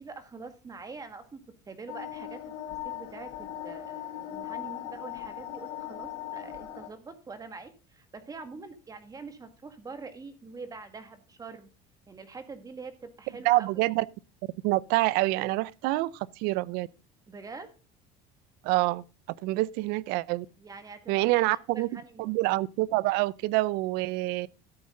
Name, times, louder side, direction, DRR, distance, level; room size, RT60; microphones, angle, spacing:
voice 1, 0.0-2.5 2.8-11.7 12.1-13.9 17.3-17.7 20.6-22.4, right 4 dB, 20° right, 1.9 m, -45 dB
sound 1, 1.9-6.9, left 12 dB, 85° left, 3.1 m, -39 dB
voice 2, 13.4-14.0 14.6-16.9 18.6-19.0 19.4-20.5 21.1-21.9 22.2-24.5, right 19 dB, 70° right, 0.6 m, -26 dB
13.0 x 8.6 x 3.8 m
cardioid pair, 130°, 17 cm